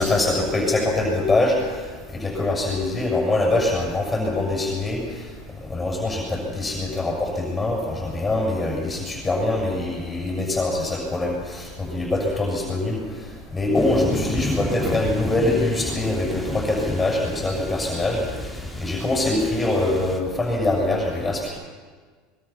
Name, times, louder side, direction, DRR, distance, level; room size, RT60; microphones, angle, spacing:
voice 1, 0.0-1.8 2.1-5.3 5.7-13.0 13.5-18.3 18.8-21.5, left 2 dB, 15° left, 0 dB, 7.2 m, -23 dB
sound 1, 13.7-20.2, left 1 dB, 5° right, 2.9 m, -31 dB
25.0 x 22.0 x 5.8 m, 1.6 s
hypercardioid pair, 90°, 0 cm